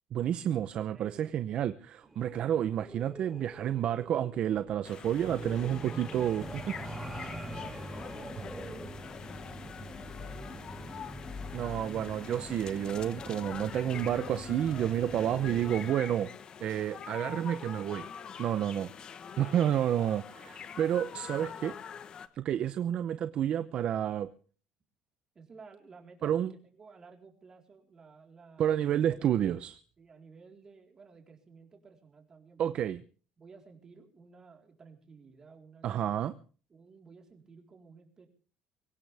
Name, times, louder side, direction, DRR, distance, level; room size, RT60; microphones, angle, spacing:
voice 1, 0.1-6.7 11.5-16.3 16.6-18.1 18.4-18.9 19.4-21.8 22.3-24.3 26.2-26.5 28.6-29.8 32.6-33.0 35.8-36.3, right 10 dB, 50° right, 12 dB, 0.7 m, -30 dB
voice 2, 0.7-1.5 6.7-11.1 22.6-22.7 25.3-29.6 30.0-32.9 33.4-36.3 36.7-38.3, right 5 dB, 25° right, 3 dB, 4.1 m, -55 dB
sound 1, 2.0-11.0, right 2 dB, 5° right, 3.4 m, -45 dB
sound 2, 4.8-22.3, left 7 dB, 40° left, 1.2 m, -45 dB
sound 3, 6.4-15.9, left 1 dB, 20° left, 3.4 m, -45 dB
23.5 x 17.0 x 3.5 m, 0.40 s
cardioid pair, 145°, 2 cm